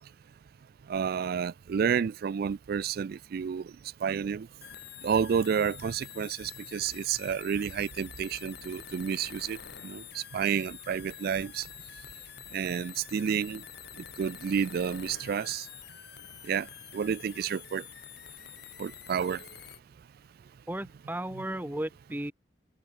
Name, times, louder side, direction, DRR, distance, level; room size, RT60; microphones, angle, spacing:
voice 1, 0.9-3.7 4.0-4.5 5.0-9.6 9.8-11.7 12.5-13.6 14.2-15.7 16.4-16.7 16.9-17.8 18.8-19.5 21.3-21.4, right 7 dB, 55° right, 0.3 m, -30 dB
sound 1, 4.6-19.8, left 10 dB, 65° left, 6.0 m, -47 dB
voice 2, 20.7-22.3, right 1 dB, 10° right, 1.1 m, -35 dB
head